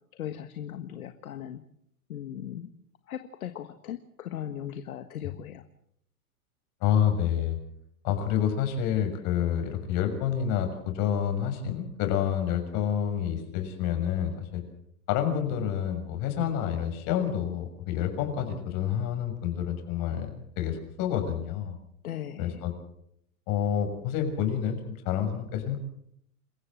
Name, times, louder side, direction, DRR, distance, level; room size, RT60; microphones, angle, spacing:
voice 1, 0.1-1.6 2.1-2.7 3.1-5.6 22.0-22.6, left 10 dB, 75° left, 9 dB, 1.6 m, -38 dB
voice 2, 6.8-7.6 8.0-14.6 15.1-20.3 20.6-21.8 22.4-22.7 23.5-25.8, left 9 dB, 45° left, 6 dB, 6.5 m, -28 dB
28.0 x 15.0 x 7.7 m, 0.73 s
hypercardioid pair, 110°, 44 cm